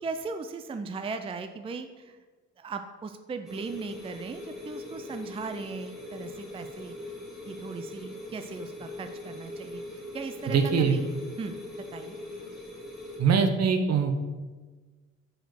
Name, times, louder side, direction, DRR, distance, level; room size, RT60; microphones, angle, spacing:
voice 1, 0.0-2.2 2.6-7.0 7.5-11.1 11.4-11.6 11.9-12.2, right 4 dB, 20° right, 8 dB, 0.4 m, -38 dB
sound 1, 3.5-13.2, left 2 dB, ahead, 1.6 m, -41 dB
voice 2, 10.5-11.0 13.2-14.1, right 5 dB, 60° right, 7 dB, 0.9 m, -23 dB
5.1 x 5.0 x 5.8 m, 1.3 s
cardioid pair, 90°, 30 cm